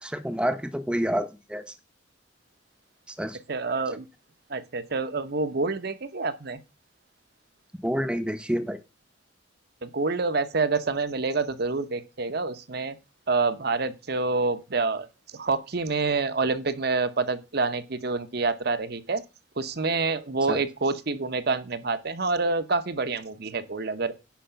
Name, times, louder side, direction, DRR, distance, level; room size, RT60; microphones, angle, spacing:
voice 1, 0.0-1.7 3.1-3.4 7.8-8.8 20.5-20.6, equal, 5° right, 0.7 m, -28 dB
voice 2, 3.5-4.1 4.5-6.6 9.8-13.0 13.3-15.1 15.3-19.2 19.6-24.1, right 3 dB, 55° right, 0.9 m, -27 dB
10.5 x 4.9 x 5.7 m
head